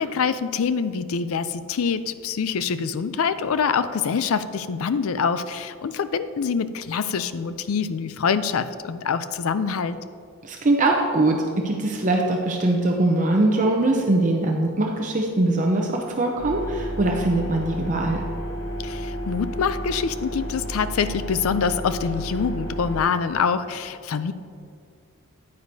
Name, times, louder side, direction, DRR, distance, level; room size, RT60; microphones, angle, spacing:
voice 1, 0.0-10.0 18.8-24.3, left 6 dB, 70° left, 13 dB, 0.4 m, -25 dB
voice 2, 10.4-18.2, right 2 dB, 35° right, 1 dB, 0.6 m, -22 dB
sound 1, 16.4-23.0, equal, 20° left, 1.3 m, -32 dB
9.5 x 9.4 x 2.7 m, 2.2 s
head